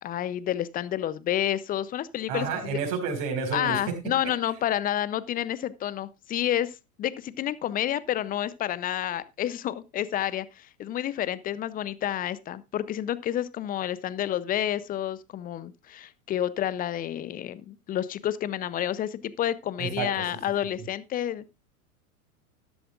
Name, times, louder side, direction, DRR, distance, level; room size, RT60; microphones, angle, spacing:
voice 1, 0.0-2.8 3.5-21.5, left 11 dB, 20° left, 18 dB, 0.5 m, -30 dB
voice 2, 2.3-3.8 19.8-20.1, right 6 dB, 50° right, 4 dB, 4.5 m, -30 dB
13.0 x 11.5 x 2.4 m, 0.25 s
hypercardioid pair, 90°, 44 cm